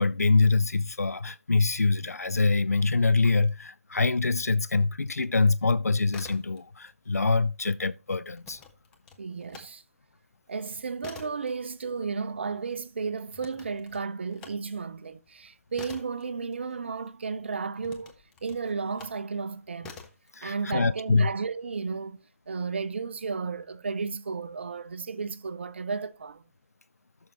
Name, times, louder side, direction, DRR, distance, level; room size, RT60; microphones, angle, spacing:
voice 1, 0.0-8.6 20.3-21.3, left 3 dB, 80° left, 0.4 m, -24 dB
sound 1, 6.1-6.9 7.2-9.7 10.1-17.1 17.8-19.2 19.8-20.3, left 5 dB, 10° left, 0.7 m, -48 dB
voice 2, 9.2-9.8 10.5-18.1 18.4-19.9 20.4-26.4, right 5 dB, 45° right, 0.7 m, -33 dB
13.0 x 6.4 x 3.0 m
figure-of-eight pair, 150°, 8 cm